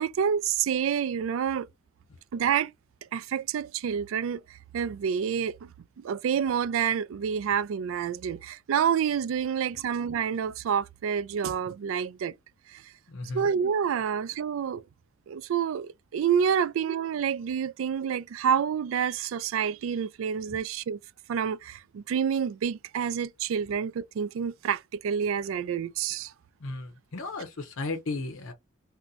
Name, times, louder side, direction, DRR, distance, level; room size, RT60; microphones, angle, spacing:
voice 1, 0.0-1.7 2.3-2.7 3.1-5.7 6.0-12.3 12.7-12.8 13.3-14.8 15.3-21.0 21.3-26.3, right 7 dB, 65° right, 0.3 m, -28 dB
voice 2, 13.1-13.5 14.1-14.2 20.5-20.6 26.6-28.5, left 3 dB, 75° left, 0.7 m, -35 dB
2.7 x 2.1 x 3.7 m
head